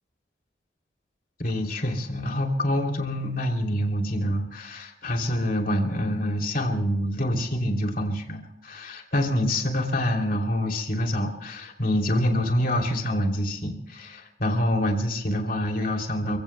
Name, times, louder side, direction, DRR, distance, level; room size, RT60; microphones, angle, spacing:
voice 1, 1.4-16.4, left 1 dB, 50° left, 2 dB, 2.9 m, -26 dB
30.0 x 16.5 x 2.2 m, 0.90 s
head